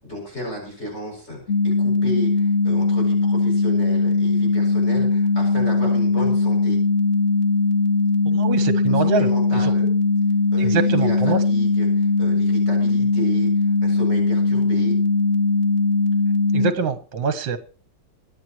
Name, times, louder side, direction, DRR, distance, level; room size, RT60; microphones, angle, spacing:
voice 1, 0.0-6.8 8.8-9.8 10.5-13.5 13.8-15.0, equal, 30° left, -1 dB, 7.8 m, -33 dB
sound 1, 1.5-16.7, left 3 dB, 55° left, 0.8 m, -20 dB
voice 2, 8.3-9.3 10.6-11.4 16.5-17.6, right 6 dB, 65° right, 8 dB, 2.1 m, -24 dB
25.5 x 11.0 x 3.1 m, 0.40 s
omnidirectional pair, 2.3 m